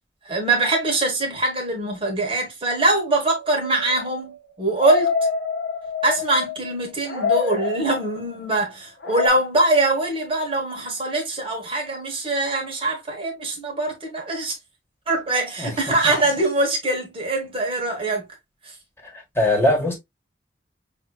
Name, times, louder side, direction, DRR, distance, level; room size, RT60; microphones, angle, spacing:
voice 1, 0.2-4.3 4.6-5.1 6.0-14.5 15.1-18.3, right 2 dB, 30° right, 1.4 m, -23 dB
sound 1, 3.1-6.7 7.0-8.4 9.0-9.3, left 5 dB, 70° left, 1.3 m, -27 dB
voice 2, 15.6-15.9 19.3-20.0, left 1 dB, 15° left, 1.7 m, -20 dB
6.1 x 2.8 x 2.3 m
head